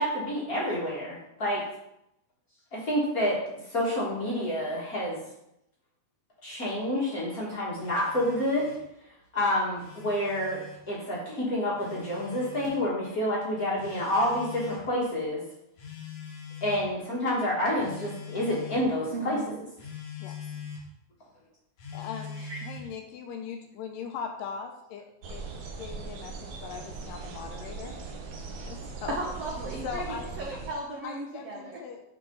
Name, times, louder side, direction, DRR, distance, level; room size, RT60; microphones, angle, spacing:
voice 1, 0.0-1.6 2.7-3.4 3.7-5.2 6.4-8.7 9.3-10.6 10.9-15.4 16.6-19.5, left 1 dB, 40° left, -5 dB, 1.3 m, -28 dB
Telephone, 7.8-8.9 9.6-10.8 11.8-12.8 13.8-14.9 15.8-16.9 17.8-18.9 19.8-20.9 21.8-22.9, left 6 dB, 60° left, 1.8 m, -43 dB
voice 2, 19.1-19.5 20.5-20.6 22.4-22.6 29.1-31.8, right 2 dB, 85° right, -1 dB, 1.4 m, -36 dB
voice 3, 21.9-22.3 22.6-25.0 25.3-25.4 25.8-28.0 28.7-29.2 29.8-30.3 31.0-32.0, left 6 dB, 80° left, 5 dB, 2.2 m, -39 dB
sound 1, 25.2-30.7, right 4 dB, 65° right, 2.2 m, -40 dB
11.0 x 3.9 x 3.9 m, 0.81 s
omnidirectional pair, 4.2 m